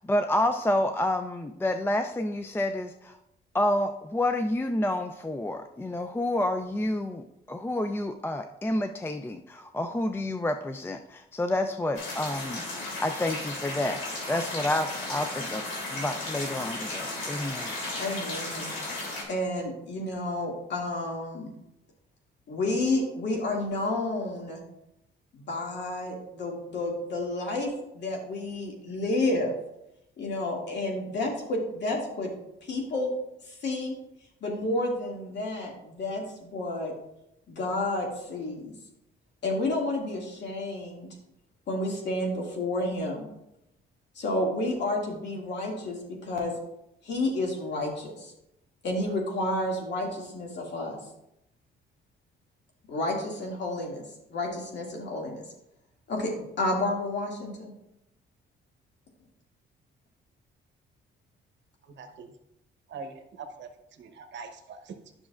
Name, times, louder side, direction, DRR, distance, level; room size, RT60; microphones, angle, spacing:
voice 1, 0.0-3.2 3.5-15.6 15.9-17.7, left 1 dB, 10° left, 7 dB, 0.4 m, -29 dB
sound 1, 11.9-19.2, left 2 dB, 85° left, 2.4 m, -35 dB
voice 2, 18.0-18.7 19.3-21.5 22.5-24.6 25.3-27.7 27.9-29.5 30.2-32.3 32.7-33.1 33.5-33.9 34.4-36.9 37.5-38.7 39.4-41.1 41.7-43.2 44.2-46.5 47.0-48.3 48.8-51.0 52.9-54.0 54.3-55.4 56.1-56.3 56.6-57.7, left 2 dB, 65° left, -1 dB, 2.1 m, -30 dB
voice 3, 62.0-62.3 62.9-63.7 64.0-64.9, right 5 dB, 65° right, 6 dB, 0.9 m, -42 dB
10.0 x 6.1 x 2.4 m, 0.84 s
cardioid pair, 90°, 20 cm